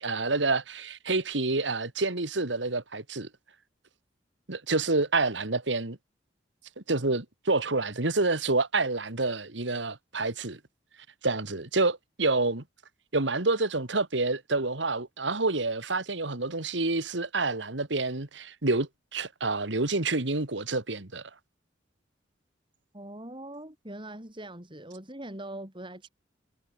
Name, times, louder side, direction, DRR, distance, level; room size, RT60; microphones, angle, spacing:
voice 1, 0.0-3.3 4.5-6.0 6.9-10.6 11.2-12.6 13.1-21.2, right 3 dB, 75° right, 2.2 m, -28 dB
voice 2, 22.9-26.1, right 1 dB, 25° right, 7.2 m, -42 dB
head